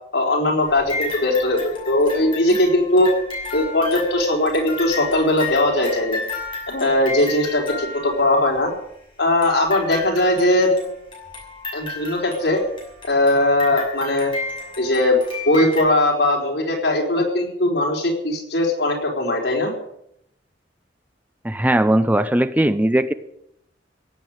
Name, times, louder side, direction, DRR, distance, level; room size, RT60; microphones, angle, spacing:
voice 1, 0.1-3.1 3.5-6.2 6.7-8.7 9.2-10.7 11.7-12.6 13.0-14.3 14.8-15.2 15.4-19.7, left 1 dB, 75° left, 0 dB, 4.6 m, -19 dB
sound 1, 0.6-8.5 9.4-15.8, left 3 dB, 30° left, 6.7 m, -33 dB
voice 2, 21.4-23.1, right 1 dB, 10° right, 11 dB, 0.7 m, -18 dB
17.5 x 8.3 x 9.1 m, 0.76 s
head